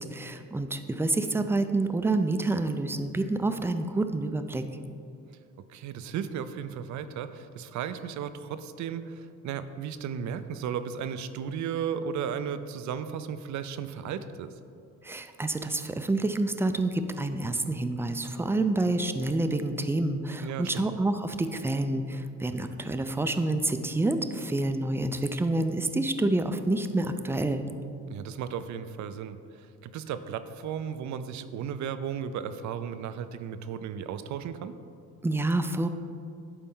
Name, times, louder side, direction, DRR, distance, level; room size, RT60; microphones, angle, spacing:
voice 1, 0.0-4.6 15.0-27.6 35.2-35.9, right 2 dB, 10° right, 8 dB, 0.4 m, -28 dB
voice 2, 5.7-14.5 20.4-20.8 28.1-34.8, right 8 dB, 70° right, 11 dB, 0.5 m, -35 dB
11.0 x 4.4 x 3.8 m, 2.5 s
cardioid pair, 90°, 30 cm